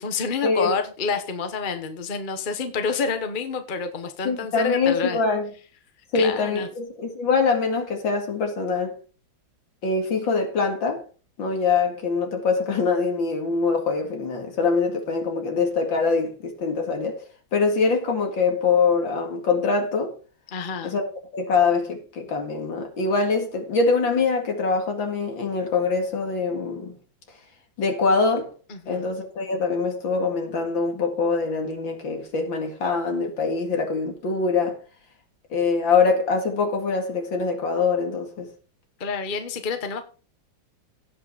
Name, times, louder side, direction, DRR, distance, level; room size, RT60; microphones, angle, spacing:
voice 1, 0.0-5.2 6.1-6.7 20.5-20.9 28.7-29.1 39.0-40.0, left 5 dB, 30° left, 1.1 m, -28 dB
voice 2, 4.2-5.5 6.1-8.9 9.8-11.0 11.4-17.2 17.5-20.1 20.8-26.9 27.8-28.5 28.9-34.8 35.5-38.5, left 4 dB, 70° left, 2.9 m, -24 dB
17.0 x 5.7 x 4.2 m
omnidirectional pair, 2.2 m